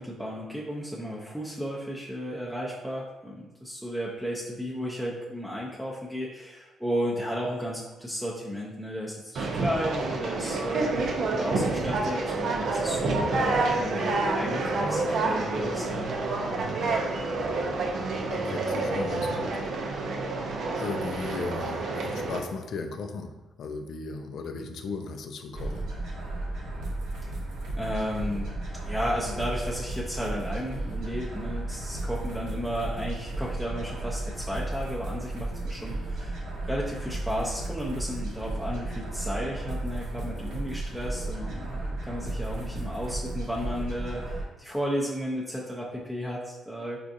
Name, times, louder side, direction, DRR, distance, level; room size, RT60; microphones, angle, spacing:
voice 1, 0.0-10.9 11.3-16.1 27.2-27.4 27.8-47.0, equal, 5° right, -5 dB, 0.5 m, -33 dB
Conversation, 9.4-22.4, right 3 dB, 60° right, 0.5 m, -28 dB
voice 2, 18.3-19.6 20.8-25.9, left 4 dB, 65° left, 6 dB, 0.4 m, -36 dB
sound 1, 25.5-44.4, right 2 dB, 85° right, 0.9 m, -34 dB
4.5 x 2.4 x 2.6 m, 1.0 s
cardioid pair, 90°, 0 cm